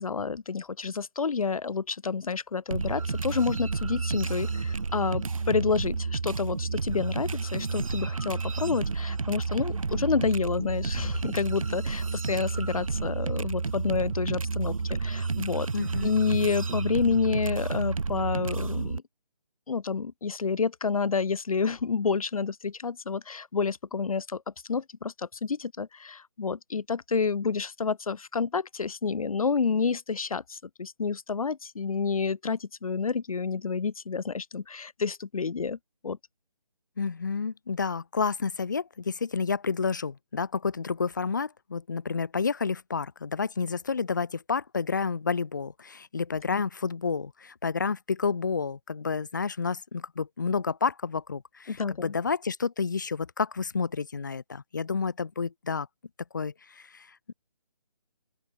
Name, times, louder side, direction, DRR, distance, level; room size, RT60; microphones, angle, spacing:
voice 1, 0.0-15.7 16.0-19.0 19.7-24.4 24.7-35.8 36.0-36.2 46.5-46.6 51.7-52.1, left 5 dB, 60° left, 0.5 m, -29 dB
sound 1, 2.7-19.0, right 4 dB, 55° right, 1.4 m, -31 dB
voice 2, 15.7-16.3 37.0-55.9 56.3-57.3, left 5 dB, 30° left, 1.2 m, -30 dB
open air
hypercardioid pair, 175°, 20 cm